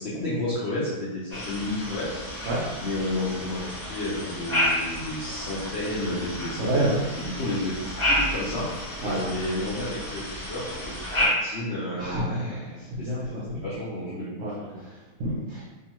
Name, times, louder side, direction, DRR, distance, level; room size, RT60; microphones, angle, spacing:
voice 1, 0.0-2.2 2.8-3.6 3.9-6.9 7.2-7.8 8.1-8.7 9.0-12.5 13.0-14.8, left 1 dB, 85° left, -9 dB, 0.5 m, -31 dB
sound 1, 1.3-11.3, left 1 dB, 25° left, 0.8 m, -31 dB
voice 2, 6.6-7.0 9.0-9.2 12.0-13.6 14.4-15.6, right 1 dB, 75° right, -7 dB, 0.7 m, -29 dB
2.7 x 2.3 x 2.9 m, 1.2 s
omnidirectional pair, 1.9 m